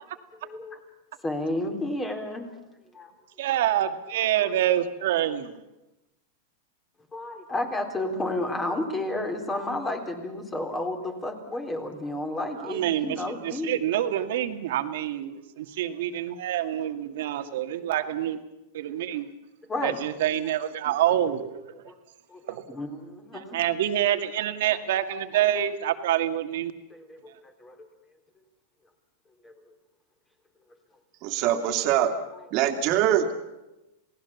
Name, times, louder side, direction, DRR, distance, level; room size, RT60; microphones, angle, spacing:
voice 1, 0.4-0.8 1.2-2.5 2.9-3.1 7.1-13.8 19.7-20.0 21.9-22.0 22.3-23.6 26.9-27.8 29.4-29.5, left 1 dB, 15° left, 5 dB, 3.8 m, -31 dB
voice 2, 3.4-5.6 12.6-18.4 18.7-19.3 19.8-21.6 22.5-22.7 23.3-26.7, right 11 dB, 70° right, 8 dB, 2.0 m, -27 dB
voice 3, 31.2-32.1 32.5-33.3, right 11 dB, 45° right, 5 dB, 2.6 m, -23 dB
28.5 x 18.0 x 7.2 m, 0.97 s
supercardioid pair, 145°, 0 cm